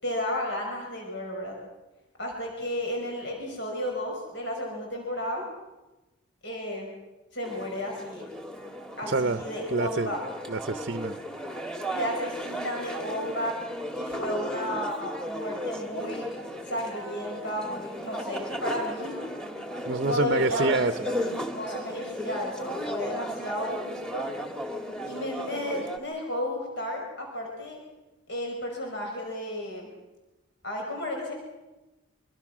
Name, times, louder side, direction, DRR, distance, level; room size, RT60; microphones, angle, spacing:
voice 1, 0.0-1.6 2.2-5.4 6.4-6.9 7.3-8.2 9.0-10.2 11.9-13.6 13.9-16.3 16.6-19.2 20.0-24.3 25.1-27.8 28.3-29.9 30.6-31.3, left 1 dB, 55° left, 1 dB, 5.9 m, -33 dB
sound 1, 7.4-26.0, equal, 5° left, 2.2 m, -35 dB
voice 2, 9.1-9.4 9.7-10.2 10.5-11.2 19.8-20.9, right 3 dB, 50° right, 10 dB, 0.8 m, -26 dB
25.5 x 24.5 x 6.2 m, 1.0 s
head